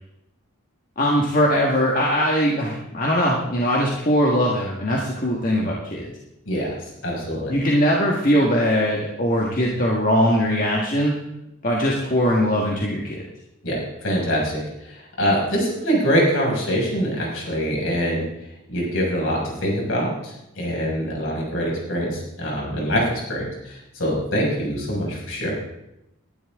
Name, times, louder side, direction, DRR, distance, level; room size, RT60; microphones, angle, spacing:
voice 1, 1.0-6.1 7.5-11.1 11.6-13.2, equal, 40° left, -2 dB, 1.7 m, -21 dB
voice 2, 6.5-7.5 13.6-18.3 18.7-25.5, equal, 60° left, -3 dB, 6.0 m, -24 dB
20.0 x 12.0 x 3.7 m, 0.87 s
head